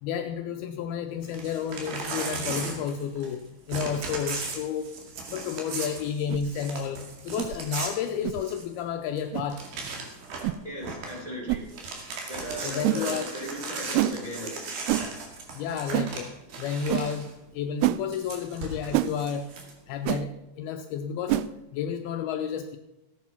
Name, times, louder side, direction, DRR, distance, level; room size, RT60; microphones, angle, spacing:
voice 1, 0.0-3.4 3.7-4.9 5.3-9.6 12.6-13.3 15.5-16.3 16.6-17.3 17.5-19.5 19.9-22.8, left 7 dB, 80° left, 5 dB, 2.4 m, -31 dB
Crumpling crinkling / Tearing, 1.2-3.4 3.7-8.8 9.2-9.3 9.5-10.5 10.8-11.2 11.6-17.3 18.1-19.7, right 4 dB, 65° right, 3.9 m, -37 dB
sound 1, 6.3-6.5 7.4-7.6 8.2-8.4 9.3-9.5 10.4-10.6 11.5-11.6 12.8-13.0 13.9-14.2 14.9-15.1 15.9-16.1 16.9-17.1 17.8-18.0 18.9-19.1 20.0-20.2 21.3-21.5, right 15 dB, 80° right, 2.5 m, -26 dB
voice 2, 10.6-11.7 12.3-14.9, equal, 10° right, -1 dB, 3.1 m, -37 dB
15.5 x 9.5 x 5.8 m, 0.92 s
omnidirectional pair, 4.8 m